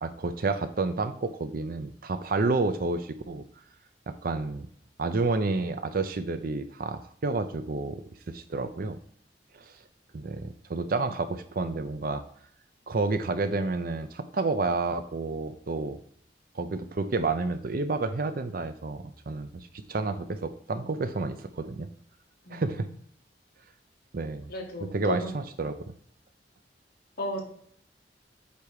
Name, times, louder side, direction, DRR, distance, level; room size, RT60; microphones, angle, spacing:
voice 1, 0.0-3.4 4.1-4.7 5.0-9.0 9.5-9.8 10.1-12.2 12.9-16.0 16.5-21.9 22.5-22.9 24.1-24.5 24.9-25.9, right 3 dB, 55° right, 10 dB, 0.6 m, -30 dB
voice 2, 24.5-25.3 27.2-27.4, left 1 dB, 60° left, 0 dB, 1.7 m, -34 dB
8.3 x 3.0 x 4.8 m, 0.64 s
head